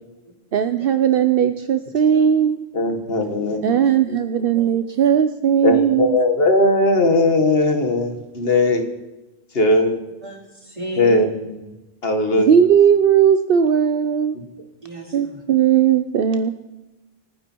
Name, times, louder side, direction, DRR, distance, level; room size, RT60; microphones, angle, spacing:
voice 1, 0.5-2.7 3.6-6.2 12.4-14.4 15.1-16.5, right 8 dB, 65° right, 9 dB, 0.8 m, -17 dB
voice 2, 2.7-3.8 4.1-4.2 5.6-8.9 9.5-9.9 11.0-11.5 12.0-12.6 14.3-14.4, left 2 dB, 70° left, 6 dB, 1.8 m, -18 dB
voice 3, 4.5-5.0 10.2-11.3 14.8-15.4, right 1 dB, 40° right, -4 dB, 4.4 m, -35 dB
26.5 x 9.6 x 4.5 m, 1.0 s
omnidirectional pair, 1.0 m